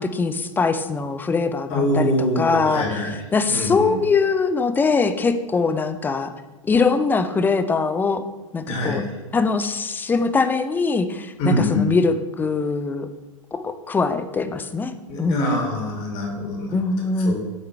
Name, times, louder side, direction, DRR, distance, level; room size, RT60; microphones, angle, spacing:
voice 1, 0.0-6.3 6.6-8.2 8.5-9.0 9.3-13.1 13.5-15.5 16.7-17.3, left 4 dB, 10° left, 10 dB, 0.4 m, -22 dB
voice 2, 1.7-3.1 3.5-3.9 8.7-9.1 11.4-11.9 15.1-16.7 17.3-17.4, left 1 dB, 45° left, 0 dB, 2.1 m, -24 dB
8.8 x 3.7 x 4.5 m, 1.2 s
hypercardioid pair, 105°, 17 cm